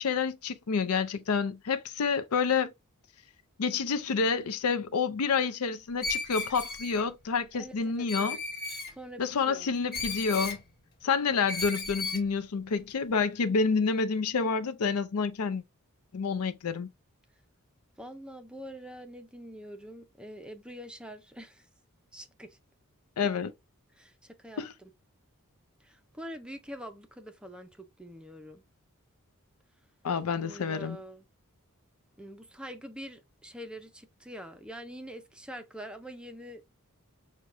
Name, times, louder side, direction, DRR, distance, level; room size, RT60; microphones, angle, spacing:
voice 1, 0.0-2.7 3.6-8.4 9.2-10.6 11.0-15.6 16.1-16.9 23.2-23.5 24.6-24.7 30.0-31.0, left 5 dB, 85° left, 0.5 m, -28 dB
Screech, 6.0-7.0 8.1-8.9 9.9-10.6 11.5-12.2, left 3 dB, 50° left, 1.4 m, -34 dB
voice 2, 7.6-8.4 8.9-9.7 18.0-21.7 22.1-22.6 23.2-23.3 24.0-24.9 25.8-28.6 30.4-31.2 32.2-36.7, equal, 5° right, 0.4 m, -45 dB
6.2 x 2.2 x 2.4 m
head